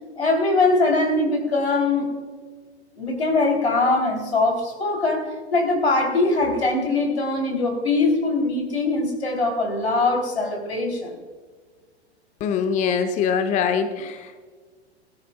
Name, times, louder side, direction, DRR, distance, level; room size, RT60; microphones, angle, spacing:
voice 1, 0.2-2.1 3.0-11.2, left 2 dB, 75° left, 1 dB, 3.3 m, -22 dB
voice 2, 12.4-14.4, left 6 dB, 20° left, 8 dB, 0.7 m, -23 dB
19.5 x 13.0 x 2.3 m, 1.5 s
figure-of-eight pair, 95°, 33 cm